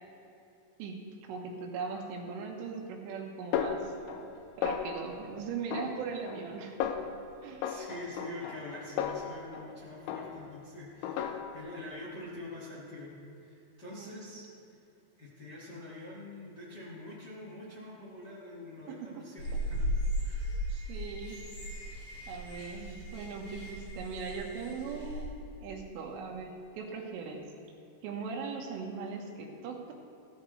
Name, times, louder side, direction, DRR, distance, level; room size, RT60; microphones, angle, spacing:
voice 1, 0.8-3.9 4.6-6.8 7.4-7.8 13.9-14.2 18.9-19.2 20.7-21.5 22.3-25.3 25.6-27.5 28.0-29.9, right 5 dB, 85° right, 1 dB, 3.8 m, -39 dB
Snare drum, 3.5-4.4 4.6-5.2 5.7-6.5 6.8-7.2 7.6-9.7 10.1-10.6 11.0-11.7, left 8 dB, 80° left, 3.0 m, -35 dB
voice 2, 7.6-13.1 13.4-14.4 15.2-19.8 20.2-20.6, left 1 dB, 55° left, -7 dB, 1.1 m, -45 dB
sound 1, 19.4-25.2, equal, 35° left, 3.6 m, -36 dB
15.5 x 14.0 x 3.3 m, 2.8 s
omnidirectional pair, 5.6 m